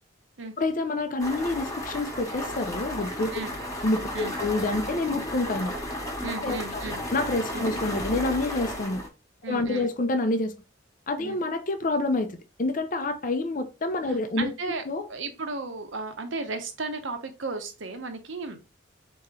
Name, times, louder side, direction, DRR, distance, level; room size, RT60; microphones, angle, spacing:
voice 1, 0.6-3.3 3.8-5.7 6.3-6.8 7.1-9.0 9.4-10.6 11.1-15.1, left 2 dB, 45° left, 0.6 m, -28 dB
sound 1, 1.2-9.1, equal, 20° left, 1.1 m, -33 dB
voice 2, 6.2-7.0 7.5-7.7 9.4-9.9 11.2-11.4 14.0-14.8 15.1-18.6, right 3 dB, 85° right, 1.0 m, -34 dB
4.2 x 3.0 x 3.7 m
head